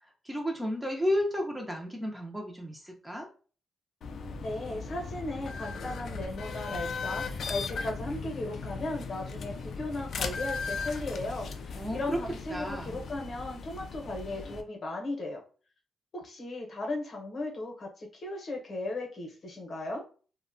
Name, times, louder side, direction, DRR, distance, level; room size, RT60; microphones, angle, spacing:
voice 1, 0.0-3.3 11.7-12.2 12.5-13.1, equal, 10° right, 1 dB, 0.4 m, -32 dB
sound 1, 4.0-14.6, left 4 dB, 65° left, 0.3 m, -37 dB
voice 2, 4.4-15.4 16.1-20.0, left 2 dB, 45° left, 1 dB, 0.7 m, -36 dB
2.7 x 2.1 x 2.5 m, 0.38 s
cardioid pair, 135°, 0 cm